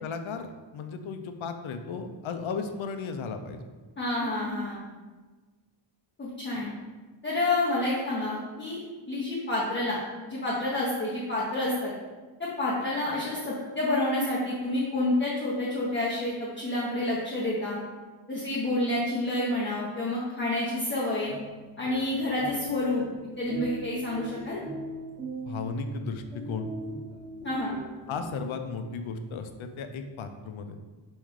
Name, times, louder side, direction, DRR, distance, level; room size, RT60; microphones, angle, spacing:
voice 1, 0.0-3.6 25.5-26.7 28.1-30.7, left 4 dB, 85° left, 7 dB, 0.6 m, -35 dB
voice 2, 4.0-4.8 6.2-6.7 7.2-8.8 9.1-10.0 10.3-11.9 12.4-17.8 18.3-21.3 21.8-23.0 23.4-24.6 27.4-27.8, left 2 dB, 25° left, -7 dB, 0.8 m, -29 dB
sound 1, 21.3-28.8, right 1 dB, 10° right, 1.0 m, -41 dB
3.6 x 3.1 x 4.7 m, 1.3 s
wide cardioid pair, 120°, 47 cm